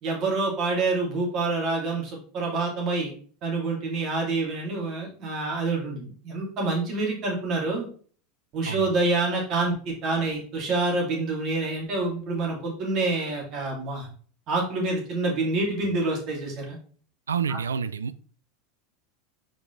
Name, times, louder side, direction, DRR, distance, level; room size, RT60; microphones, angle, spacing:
voice 1, 0.0-3.1 3.4-7.9 8.5-14.1 14.5-16.8 17.5-17.6, right 3 dB, 45° right, -1 dB, 3.0 m, -27 dB
voice 2, 17.3-18.3, right 6 dB, 80° right, 14 dB, 0.4 m, -29 dB
5.3 x 5.0 x 4.0 m, 0.43 s
hypercardioid pair, 85°, 0 cm